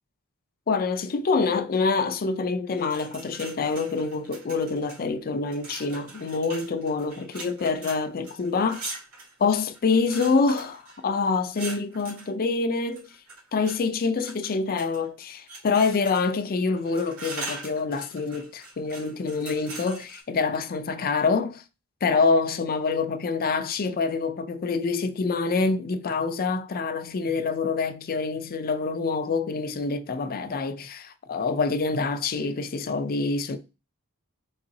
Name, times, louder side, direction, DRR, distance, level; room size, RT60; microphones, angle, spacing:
voice 1, 0.7-8.9 9.4-13.1 13.5-21.6 22.0-33.6, left 4 dB, 40° left, 0.5 m, -26 dB
sound 1, 2.7-5.0 5.5-12.3 12.9-13.8 14.2-15.1 15.5-16.4 16.7-20.2, right 2 dB, 75° right, 1.9 m, -41 dB
4.0 x 3.6 x 2.7 m
head